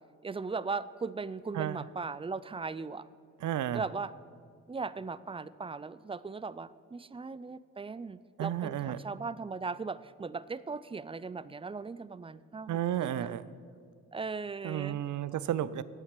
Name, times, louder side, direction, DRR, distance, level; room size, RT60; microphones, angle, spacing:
voice 1, 0.2-3.1 3.7-4.1 4.7-13.3 14.1-15.0, right 4 dB, 20° right, 17 dB, 0.4 m, -38 dB
voice 2, 1.5-1.9 3.4-3.8 8.4-9.0 12.7-13.4 14.6-15.8, right 11 dB, 70° right, 17 dB, 0.5 m, -32 dB
8.5 x 8.3 x 7.5 m, 2.2 s
supercardioid pair, 50°, 32 cm